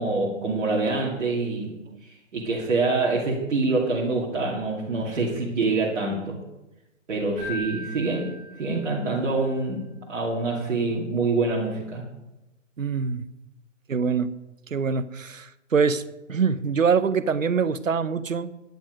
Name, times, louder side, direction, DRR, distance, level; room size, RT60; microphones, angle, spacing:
voice 1, 0.0-1.7 2.3-6.4 7.1-8.3 8.6-9.8 10.1-12.0, right 3 dB, 65° right, -4 dB, 2.6 m, -25 dB
Keyboard (musical), 7.4-9.2, left 1 dB, 15° right, 4.7 m, -38 dB
voice 2, 12.8-13.3 13.9-14.3 14.7-16.0 16.3-18.5, right 5 dB, 90° right, 16 dB, 0.8 m, -24 dB
10.5 x 10.5 x 5.1 m, 0.99 s
figure-of-eight pair, 135°, 38 cm